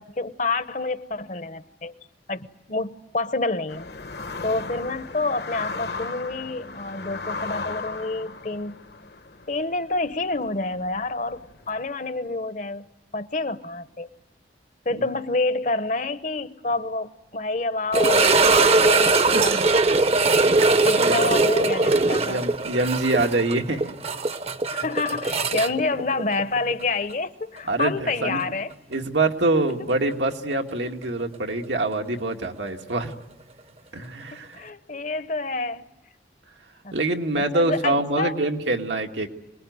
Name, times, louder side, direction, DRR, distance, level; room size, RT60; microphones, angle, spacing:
voice 1, 0.0-1.9 2.3-3.9 4.4-8.8 9.5-11.4 11.7-12.9 13.1-14.1 14.8-20.0 20.8-22.4 24.7-28.7 34.5-35.8 36.8-36.9 37.5-38.4, left 3 dB, 45° left, 0.9 m, -28 dB
sound 1, 3.7-11.8, left 4 dB, 65° left, 1.1 m, -36 dB
sound 2, 17.9-26.8 27.1-27.2 27.8-27.9 30.5-30.6, right 3 dB, 35° right, 0.8 m, -20 dB
voice 2, 19.3-19.6 20.6-21.2 22.2-23.9 27.7-28.4 28.9-33.1 33.9-34.6 36.9-39.3, right 2 dB, 90° right, 1.8 m, -25 dB
26.5 x 20.0 x 9.4 m
head